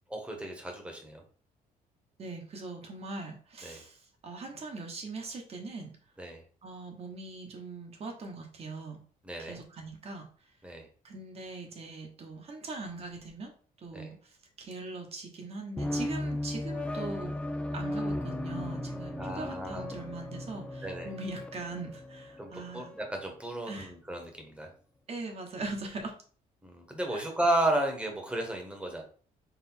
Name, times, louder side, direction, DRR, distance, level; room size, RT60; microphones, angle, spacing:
voice 1, 0.1-1.2 3.6-3.8 6.2-6.4 9.2-9.6 10.6-10.9 13.9-14.1 19.2-19.8 20.8-21.1 22.4-24.7 26.6-29.0, right 1 dB, 10° right, 2 dB, 1.1 m, -33 dB
voice 2, 2.2-6.0 6.6-9.0 9.4-10.3 11.0-13.5 13.8-17.4 17.7-23.0 23.6-23.9 25.1-26.1 27.1-27.3, right 3 dB, 45° right, 3 dB, 1.1 m, -41 dB
sound 1, 15.8-23.1, left 1 dB, 10° left, 0.3 m, -36 dB
4.0 x 2.5 x 4.3 m, 0.43 s
cardioid pair, 120°, 15 cm